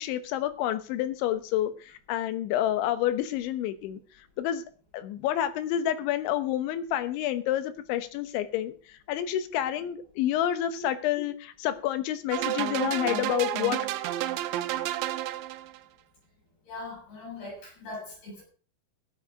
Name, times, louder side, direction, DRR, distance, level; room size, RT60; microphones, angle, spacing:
voice 1, 0.0-4.0 4.4-4.6 4.9-8.7 9.1-13.8, left 12 dB, 90° left, 11 dB, 3.5 m, -29 dB
sound 1, 12.3-15.8, right 13 dB, 85° right, 3.1 m, -30 dB
voice 2, 16.7-18.4, left 2 dB, 60° left, -5 dB, 9.7 m, -40 dB
15.0 x 10.0 x 5.0 m, 0.39 s
omnidirectional pair, 5.2 m